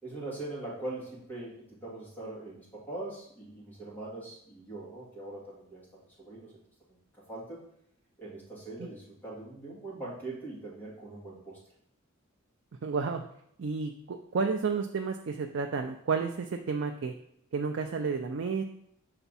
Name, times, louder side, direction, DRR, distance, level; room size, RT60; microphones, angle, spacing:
voice 1, 0.0-6.5 6.9-7.0 7.3-7.6 8.2-11.6, right 2 dB, 10° left, -6 dB, 2.3 m, -42 dB
voice 2, 12.8-13.2 13.6-17.1 17.5-18.6, right 5 dB, 60° right, 4 dB, 0.4 m, -31 dB
5.8 x 4.4 x 4.1 m, 0.72 s
head